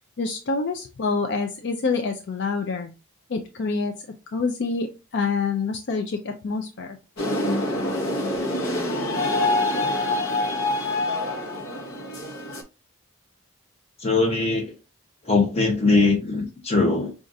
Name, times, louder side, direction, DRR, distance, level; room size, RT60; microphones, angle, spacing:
voice 1, 0.2-2.9 3.3-4.0 4.3-7.0, left 4 dB, 55° left, 0.4 m, -27 dB
sound 1, 7.2-12.6, left 2 dB, 80° left, 0.9 m, -25 dB
voice 2, 14.0-14.7 15.3-17.1, left 3 dB, 30° left, 0.8 m, -21 dB
5.1 x 2.4 x 2.6 m
head